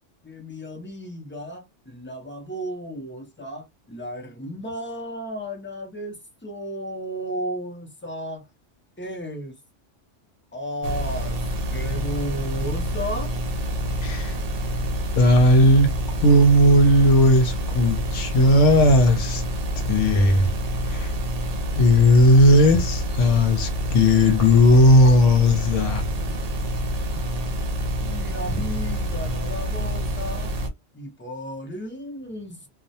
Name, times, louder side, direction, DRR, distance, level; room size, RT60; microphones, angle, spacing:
voice 1, 0.2-8.5 9.0-9.6 10.5-11.4 11.7-13.3 27.1-27.6 28.0-30.5 30.9-32.7, equal, 15° left, 0.4 m, -34 dB
sound 1, 10.8-30.7, equal, 50° right, 0.5 m, -27 dB
voice 2, 14.0-14.3 15.1-15.9 16.2-19.4 19.8-20.5 20.9-21.1 21.7-26.1, left 1 dB, 80° left, 1.0 m, -16 dB
2.3 x 2.1 x 2.7 m
omnidirectional pair, 1.3 m